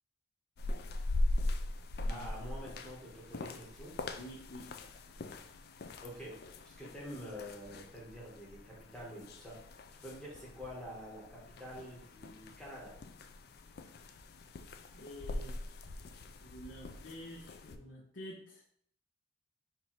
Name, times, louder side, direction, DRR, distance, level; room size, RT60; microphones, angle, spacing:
sound 1, 0.6-17.8, left 2 dB, 50° left, 0.3 m, -41 dB
voice 1, 2.1-3.9 6.0-6.3 6.6-9.5 10.0-12.9, equal, 5° left, -6 dB, 1.4 m, -47 dB
voice 2, 4.2-4.8 14.9-15.8 16.4-18.6, equal, 65° left, -4 dB, 0.8 m, -49 dB
4.7 x 2.7 x 4.2 m, 0.65 s
head